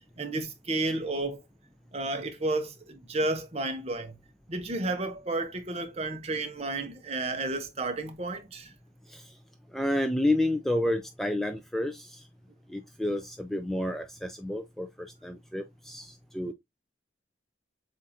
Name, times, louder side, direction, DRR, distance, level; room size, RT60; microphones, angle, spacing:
voice 1, 0.2-1.4 1.9-4.1 4.5-8.7, right 2 dB, 35° right, 0.8 m, -32 dB
voice 2, 9.7-12.2 12.7-16.5, left 1 dB, ahead, 0.3 m, -30 dB
7.4 x 2.6 x 2.7 m
head